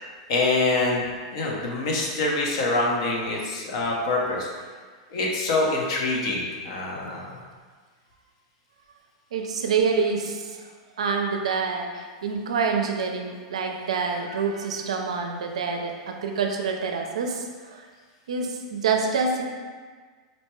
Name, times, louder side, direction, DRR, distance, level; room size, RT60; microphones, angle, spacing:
voice 1, 0.3-1.0 1.3-4.5 5.1-7.4, left 2 dB, 65° left, -2 dB, 0.8 m, -25 dB
voice 2, 9.3-10.7 11.0-17.9 18.3-19.4, right 5 dB, 85° right, 3 dB, 0.4 m, -27 dB
4.1 x 2.2 x 3.1 m, 1.5 s
hypercardioid pair, 120°, 3 cm